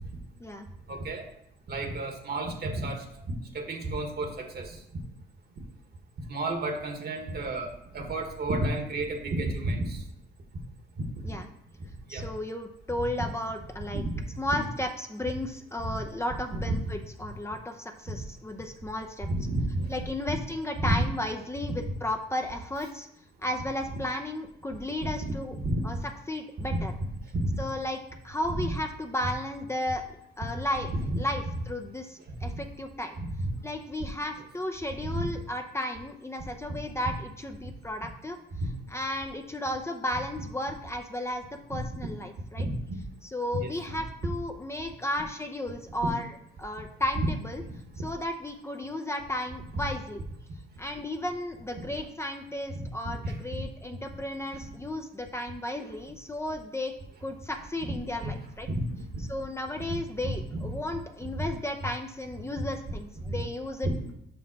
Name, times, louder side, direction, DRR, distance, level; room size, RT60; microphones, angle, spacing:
voice 1, 0.9-1.3 1.7-3.0 3.5-4.8 6.3-10.0 11.2-11.4 12.1-12.3 13.0-13.2 13.9-14.2 15.8-16.0 16.5-17.0 19.2-19.9 20.3-20.4 20.8-21.1 23.9-24.0 25.0-25.8 26.6-27.1 27.3-27.6 28.5-28.7 30.9-31.2 32.4-32.5 33.2-33.5 34.0-34.1 35.0-35.3 38.6-38.7 41.7-41.8 42.6-43.0 43.5-44.0 47.7-47.8 51.8-52.0 52.7-53.4 55.8-55.9 57.8-57.9 58.2-58.3 58.7-59.0 59.9-61.5 62.6-62.7 63.2-63.4 63.8-63.9, right 1 dB, 55° right, 4 dB, 1.5 m, -31 dB
voice 2, 12.1-14.0 14.4-19.3 19.9-23.1 23.4-25.6 25.8-25.9 26.3-26.9 27.6-28.0 28.2-33.2 33.6-38.4 38.9-42.7 43.3-46.3 46.6-47.6 48.0-50.2 50.8-56.9 57.2-58.7 59.3-63.9, left 1 dB, 15° left, 4 dB, 0.7 m, -34 dB
5.6 x 5.3 x 5.9 m, 0.75 s
cardioid pair, 90°, 20 cm